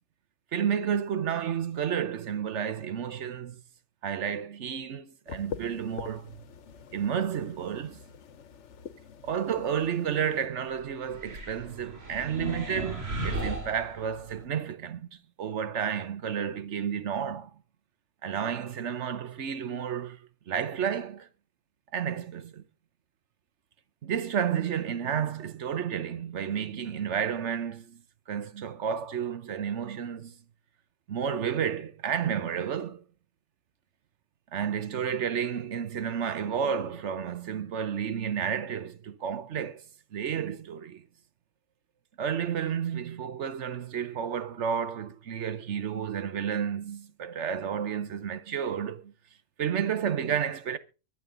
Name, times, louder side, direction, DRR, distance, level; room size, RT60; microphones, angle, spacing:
voice 1, 0.5-3.6 4.0-6.4 6.9-8.0 9.2-15.1 15.4-17.5 18.2-20.2 20.5-21.3 21.9-22.6 24.0-28.0 28.3-30.4 31.1-33.0 34.5-39.9 40.1-41.0 42.2-49.1 49.6-50.8, right 8 dB, 80° right, 1.2 m, -31 dB
sound 1, 5.3-10.5, left 7 dB, 85° left, 1.2 m, -45 dB
sound 2, 11.1-14.4, right 1 dB, 65° right, 2.8 m, -36 dB
23.5 x 7.9 x 3.8 m
omnidirectional pair, 1.2 m